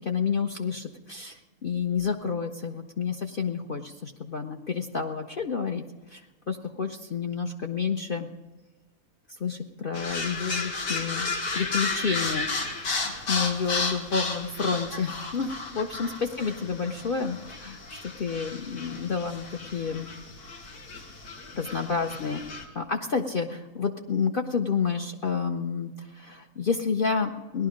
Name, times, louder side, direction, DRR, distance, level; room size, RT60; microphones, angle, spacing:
voice 1, 0.0-8.3 9.4-16.1 16.4-20.1 21.5-22.5 22.7-27.7, left 5 dB, 50° left, 3 dB, 0.7 m, -30 dB
sound 1, 9.9-22.6, left 3 dB, 80° left, 2.2 m, -33 dB
18.0 x 11.5 x 5.1 m, 1.2 s
omnidirectional pair, 1.6 m